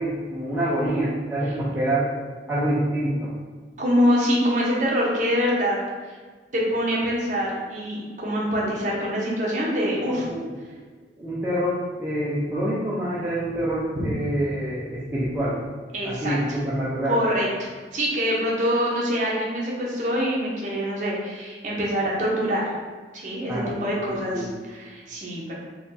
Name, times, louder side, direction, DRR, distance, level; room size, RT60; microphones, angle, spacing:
voice 1, 0.0-2.1 2.5-3.3 8.6-8.7 10.1-10.5 11.2-15.6 16.0-17.2 23.5-23.9 24.3-24.5, right 1 dB, 10° right, -10 dB, 0.5 m, -26 dB
voice 2, 3.8-5.8 6.5-10.2 14.0-14.1 15.9-16.4 17.0-22.7 23.1-25.5, equal, 40° right, -4 dB, 0.7 m, -25 dB
4.2 x 2.3 x 2.6 m, 1.4 s
head